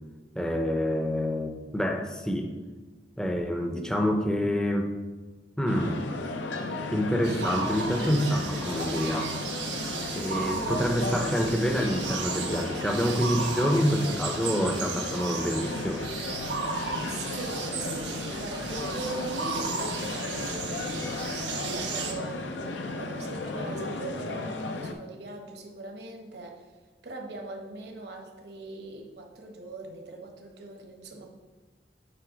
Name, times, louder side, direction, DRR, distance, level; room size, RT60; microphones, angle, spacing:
voice 1, 0.4-2.5 3.2-4.9 5.6-6.1 6.9-9.3 10.1-16.0, equal, 5° left, 3 dB, 0.5 m, -27 dB
sound 1, 5.7-24.9, left 2 dB, 85° left, 0.6 m, -35 dB
sound 2, 7.2-22.1, right 5 dB, 85° right, 0.8 m, -35 dB
voice 2, 17.0-21.0 21.5-22.5 22.9-26.7 27.0-31.3, right 2 dB, 65° right, 1 dB, 1.0 m, -40 dB
7.8 x 3.2 x 5.0 m, 1.3 s
head